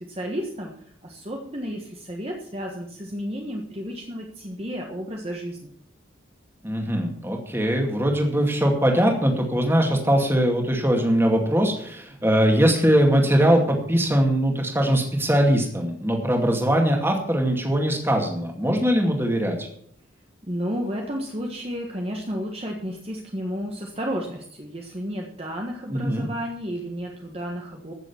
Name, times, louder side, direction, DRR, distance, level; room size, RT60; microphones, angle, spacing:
voice 1, 0.0-5.7 20.5-27.9, equal, 30° right, 0 dB, 1.5 m, -32 dB
voice 2, 6.6-19.7 25.9-26.2, equal, 10° right, 2 dB, 2.3 m, -21 dB
15.5 x 7.1 x 7.2 m, 0.64 s
head